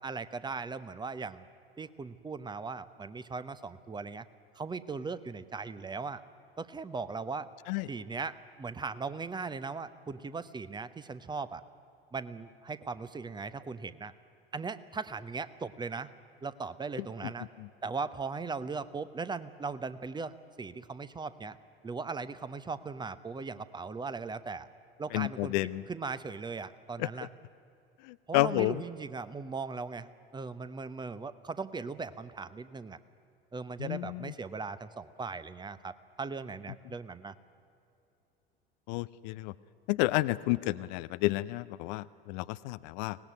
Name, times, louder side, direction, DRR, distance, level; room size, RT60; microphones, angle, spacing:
voice 1, 0.0-1.4 1.8-4.3 4.5-6.2 6.6-7.5 7.9-11.6 12.1-14.1 14.5-16.1 16.4-17.5 17.8-21.6 21.8-24.7 25.0-25.5 25.9-27.3 28.3-33.0 33.5-37.3, right 4 dB, 15° right, 13 dB, 0.9 m, -38 dB
voice 2, 25.1-25.8 27.0-27.1 28.0-28.8 33.8-34.3 38.9-39.5 39.9-43.2, left 19 dB, 50° left, 15 dB, 0.6 m, -30 dB
24.5 x 19.0 x 9.3 m, 2.7 s
figure-of-eight pair, 75°, 30 cm